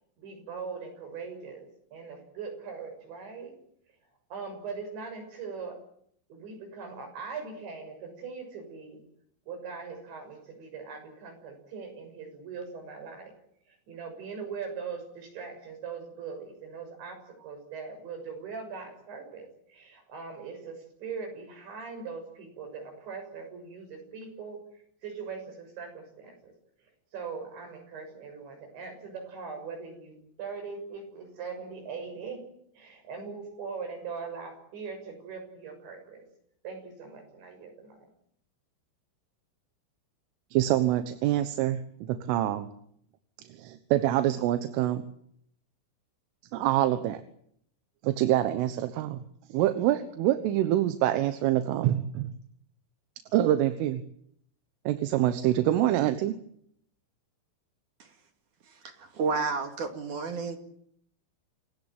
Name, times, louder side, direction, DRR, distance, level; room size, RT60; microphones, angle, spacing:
voice 1, 0.2-1.7 1.9-3.5 4.3-5.8 6.3-9.0 9.5-13.4 13.7-26.5 27.1-32.4 32.7-36.3 36.6-38.1, right 5 dB, 65° right, 5 dB, 8.8 m, -41 dB
voice 2, 40.5-41.8 42.1-42.7 43.6-45.0 46.5-47.2 48.0-49.2 49.5-52.3 53.3-54.0 54.9-56.4, right 13 dB, 85° right, 10 dB, 3.8 m, -25 dB
voice 3, 59.0-60.6, right 4 dB, 50° right, 7 dB, 3.1 m, -30 dB
28.0 x 17.5 x 9.1 m, 0.69 s
omnidirectional pair, 5.6 m